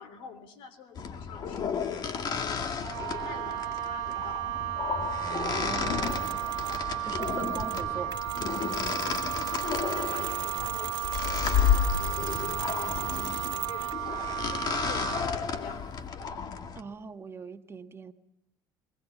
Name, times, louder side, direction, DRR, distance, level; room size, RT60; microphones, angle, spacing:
voice 1, 0.0-1.7 2.4-2.9 3.2-4.5 7.7-8.1 9.0-13.9 14.4-15.9, left 6 dB, 75° left, 12 dB, 3.3 m, -46 dB
sound 1, 1.0-16.8, left 7 dB, 45° left, 2.0 m, -32 dB
Wind instrument woodwind instrument, 2.8-15.3, right 14 dB, 85° right, 1.4 m, -34 dB
voice 2, 5.2-6.3 7.0-8.1 16.7-18.1, right 5 dB, 25° right, 7 dB, 1.4 m, -41 dB
Mechanisms, 6.0-6.9 7.2-14.1, right 9 dB, 45° right, 1.6 m, -40 dB
22.0 x 20.5 x 8.4 m, 0.78 s
supercardioid pair, 100°, 9 cm